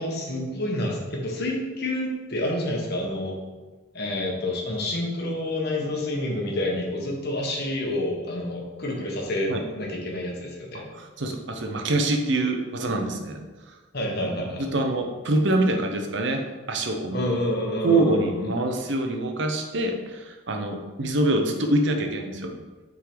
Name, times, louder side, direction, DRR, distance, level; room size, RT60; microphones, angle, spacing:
voice 1, 0.0-3.4 3.9-10.9 13.9-14.6 17.1-18.5, left 1 dB, 50° left, -1 dB, 1.3 m, -28 dB
voice 2, 10.7-13.4 14.2-14.3 14.6-17.2 17.8-22.5, right 2 dB, 60° right, 4 dB, 0.8 m, -25 dB
6.2 x 3.8 x 4.9 m, 1.3 s
head